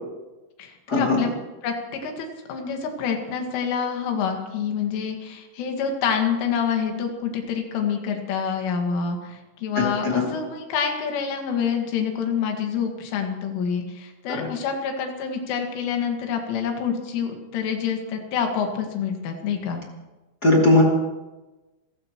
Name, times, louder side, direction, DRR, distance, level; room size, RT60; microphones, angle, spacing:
voice 1, 0.6-1.3 1.6-19.8, left 7 dB, 80° left, 3 dB, 4.4 m, -27 dB
voice 2, 20.4-20.8, left 2 dB, 30° left, -1 dB, 2.1 m, -18 dB
28.5 x 15.0 x 3.1 m, 1.1 s
omnidirectional pair, 5.6 m